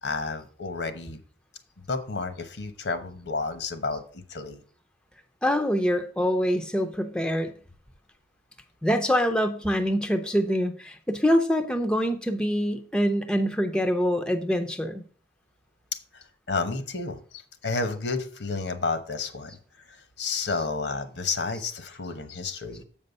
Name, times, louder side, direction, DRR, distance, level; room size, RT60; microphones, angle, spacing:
voice 1, 0.0-1.2 1.9-4.6 16.1-19.6 19.9-22.8, left 4 dB, 75° left, 9 dB, 1.0 m, -31 dB
voice 2, 5.4-7.5 8.8-15.0, equal, 5° left, 7 dB, 0.5 m, -25 dB
7.6 x 5.4 x 5.3 m, 0.43 s
head